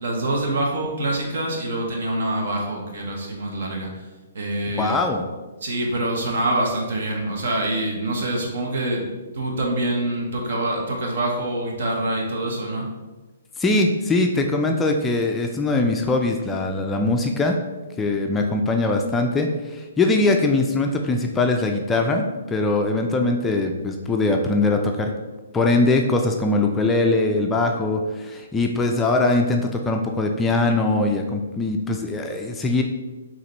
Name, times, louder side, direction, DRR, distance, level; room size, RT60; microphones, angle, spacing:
voice 1, 0.0-3.9 4.3-5.0 5.6-9.1 9.3-12.9, right 1 dB, 65° right, 0 dB, 1.1 m, -25 dB
voice 2, 4.8-5.3 13.6-17.6 18.0-25.1 25.5-32.8, left 2 dB, 10° left, 2 dB, 0.3 m, -21 dB
4.9 x 2.9 x 3.1 m, 1.2 s
hypercardioid pair, 150°, 0 cm